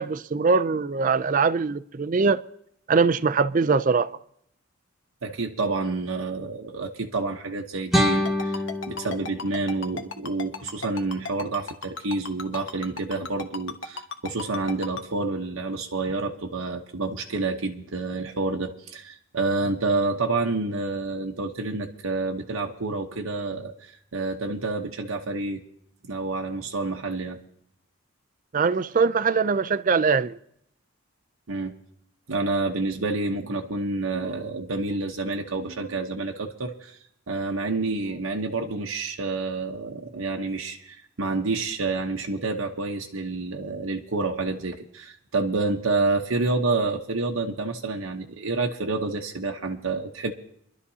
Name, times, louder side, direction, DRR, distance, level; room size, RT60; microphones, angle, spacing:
voice 1, 0.0-2.4 2.9-4.1 28.5-30.4, right 4 dB, 40° right, 0.4 m, -22 dB
voice 2, 5.2-25.6 26.0-27.4 31.5-31.7 32.3-37.0 37.3-50.3, right 3 dB, 85° right, 1.0 m, -28 dB
sound 1, 7.9-10.9, left 1 dB, ahead, 1.4 m, -27 dB
Ringtone, 8.3-15.0, left 4 dB, 65° left, 1.1 m, -34 dB
24.5 x 12.0 x 2.8 m
head